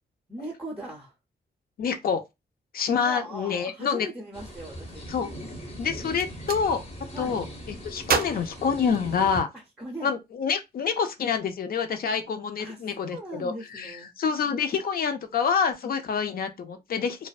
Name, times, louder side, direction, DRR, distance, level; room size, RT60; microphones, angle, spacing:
voice 1, 0.3-1.1 3.0-5.1 7.1-7.3 9.5-10.1 12.6-14.1, right 1 dB, 5° right, 0.5 m, -39 dB
voice 2, 1.8-2.2 2.7-4.1 5.1-5.3 5.8-6.8 7.2-9.5 10.0-17.3, left 6 dB, 55° left, 0.4 m, -27 dB
sound 1, 4.3-9.4, equal, 35° left, 0.8 m, -40 dB
Gunshot gunfire, 6.1-6.6 8.0-9.5, right 6 dB, 60° right, 0.4 m, -30 dB
2.4 x 2.1 x 2.3 m
wide cardioid pair, 125°, 18 cm